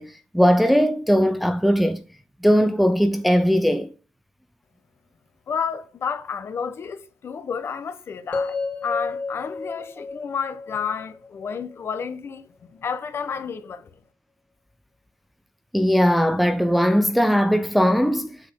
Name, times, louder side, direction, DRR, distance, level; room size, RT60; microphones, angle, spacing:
voice 1, 0.0-2.0 2.4-3.9 15.7-18.4, equal, ahead, 0.5 m, -19 dB
voice 2, 5.5-8.5 8.8-12.4 12.7-13.8, left 6 dB, 45° left, 1.0 m, -30 dB
sound 1, 8.3-12.4, left 4 dB, 25° left, 2.7 m, -32 dB
8.1 x 6.0 x 3.7 m
cardioid pair, 145°, 6 cm